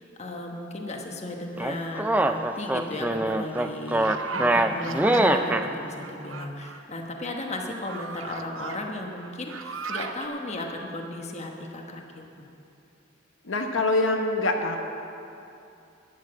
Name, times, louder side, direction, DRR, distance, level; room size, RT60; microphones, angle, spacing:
voice 1, 0.0-12.2, left 1 dB, 35° left, 2 dB, 1.1 m, -35 dB
sound 1, 1.6-5.7, right 1 dB, 10° right, 0.4 m, -23 dB
sound 2, 3.3-5.3 6.0-6.8 7.5-8.8 9.2-10.3, right 4 dB, 75° right, 0.6 m, -37 dB
voice 2, 13.4-14.8, left 2 dB, 75° left, 3 dB, 1.0 m, -24 dB
11.5 x 7.3 x 8.7 m, 2.7 s
head